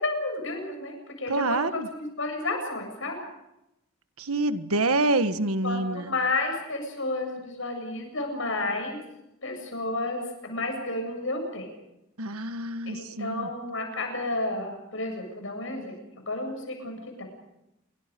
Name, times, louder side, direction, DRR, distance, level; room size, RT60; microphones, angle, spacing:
voice 1, 0.0-3.2 5.6-9.0 9.4-11.7 12.9-16.0 16.3-17.2, left 2 dB, 65° left, 4 dB, 7.8 m, -31 dB
voice 2, 1.3-1.9 4.2-6.1 12.2-13.5, right 2 dB, 90° right, 10 dB, 1.5 m, -27 dB
28.0 x 24.0 x 5.3 m, 0.87 s
head